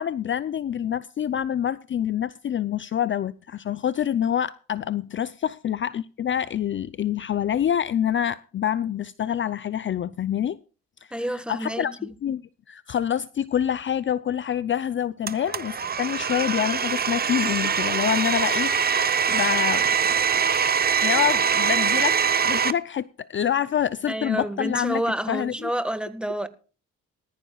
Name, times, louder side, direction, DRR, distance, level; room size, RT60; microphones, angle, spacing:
voice 1, 0.0-10.6 11.0-11.1 11.5-11.9 12.2-12.4 12.7-18.7 19.3-19.9 20.7-25.0 25.3-25.5, left 9 dB, 40° left, 0.5 m, -26 dB
voice 2, 11.1-12.1 24.1-26.5, right 1 dB, 5° right, 1.5 m, -29 dB
Domestic sounds home sounds, 15.3-22.7, right 7 dB, 30° right, 0.8 m, -23 dB
19.5 x 14.0 x 2.3 m
cardioid pair, 90°, 30 cm